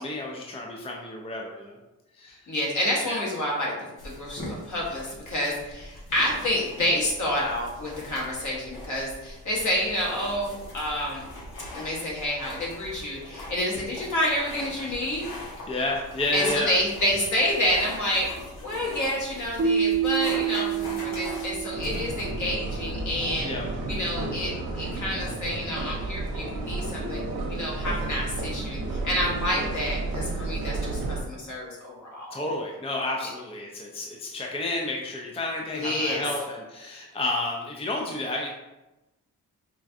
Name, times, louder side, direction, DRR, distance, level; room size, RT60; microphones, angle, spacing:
voice 1, 0.0-1.8 2.2-2.4 3.0-3.2 15.7-16.7 23.4-23.7 32.3-38.5, left 2 dB, 15° left, -1 dB, 0.5 m, -31 dB
voice 2, 2.5-3.8 4.0-11.2 11.7-15.3 16.3-18.3 18.6-23.5 23.9-27.2 27.5-32.3 35.7-36.2, left 1 dB, 55° left, -4 dB, 1.3 m, -28 dB
sound 1, 4.0-22.3, left 1 dB, 90° left, 1.1 m, -41 dB
Keyboard (musical), 19.6-22.4, right 8 dB, 45° right, 0.7 m, -27 dB
sound 2, 21.7-31.2, right 2 dB, 80° right, 0.8 m, -32 dB
4.5 x 2.3 x 2.6 m, 1.0 s
cardioid pair, 60°, 36 cm